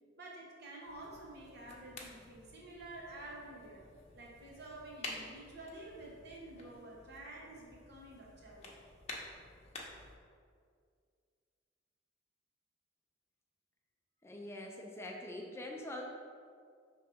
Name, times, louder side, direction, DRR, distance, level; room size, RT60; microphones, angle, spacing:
voice 1, 0.2-3.8 4.1-8.7, right 2 dB, 60° right, -2 dB, 1.2 m, -50 dB
sound 1, 0.8-10.1, left 2 dB, 35° left, 0.9 m, -51 dB
voice 2, 14.2-16.0, left 1 dB, 15° left, 1 dB, 0.5 m, -44 dB
5.7 x 3.4 x 4.9 m, 2.1 s
head